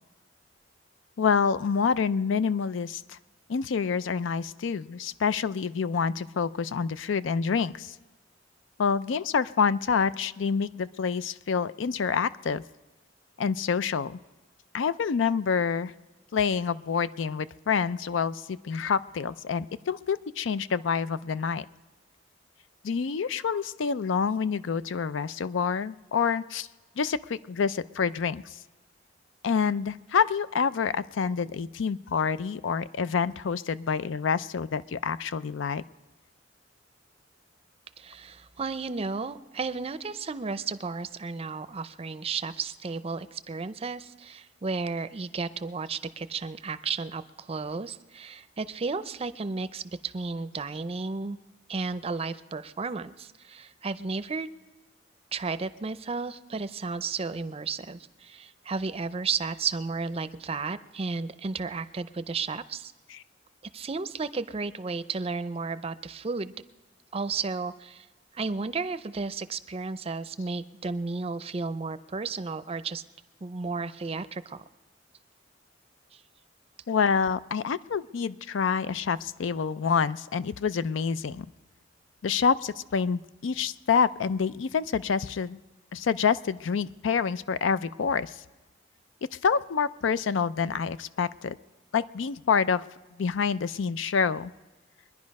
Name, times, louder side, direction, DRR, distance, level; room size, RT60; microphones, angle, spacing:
voice 1, 1.2-3.2 3.5-7.9 8.8-12.6 13.4-14.2 14.7-15.9 16.3-21.7 22.8-26.7 27.0-28.6 29.4-35.8 63.1-63.2 76.9-81.5 82.2-85.6 85.9-88.4 89.4-91.6 91.9-92.8 93.2-94.5, left 6 dB, 80° left, 16 dB, 0.4 m, -27 dB
voice 2, 38.0-51.4 51.7-54.5 55.3-62.9 63.7-66.5 67.1-68.1 68.3-73.0 73.4-74.6, right 4 dB, 30° right, 13 dB, 0.5 m, -33 dB
23.0 x 10.5 x 5.3 m, 1.2 s
head